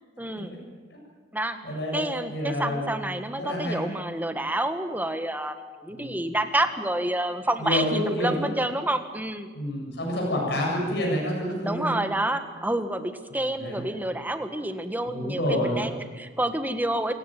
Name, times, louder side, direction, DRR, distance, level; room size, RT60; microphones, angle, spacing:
voice 1, 0.2-0.6 1.3-1.6 1.9-9.5 11.6-17.1, right 1 dB, 10° right, 8 dB, 1.6 m, -28 dB
voice 2, 1.6-2.9 3.4-3.8 5.9-6.2 7.6-8.5 9.5-12.0 13.3-13.9 15.1-15.8, left 1 dB, 65° left, -2 dB, 7.8 m, -28 dB
28.0 x 17.5 x 9.2 m, 1.4 s
head